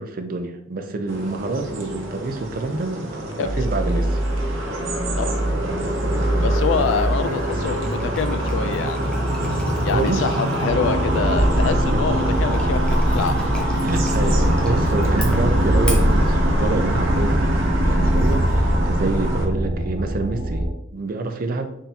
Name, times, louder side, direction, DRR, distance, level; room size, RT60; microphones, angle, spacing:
voice 1, 0.0-4.2 6.8-6.9 9.9-10.3 11.7-12.3 13.8-17.5 17.8-21.7, right 3 dB, 45° right, 7 dB, 0.5 m, -27 dB
sound 1, 1.1-19.5, right 1 dB, 85° right, 0.7 m, -25 dB
sound 2, 3.3-20.7, right 1 dB, 25° right, 1.2 m, -23 dB
sound 3, 5.9-18.5, equal, 5° left, 0.6 m, -40 dB
voice 2, 6.4-9.0 9.8-13.4, left 6 dB, 70° left, 10 dB, 0.3 m, -25 dB
3.6 x 2.7 x 4.0 m, 0.77 s
head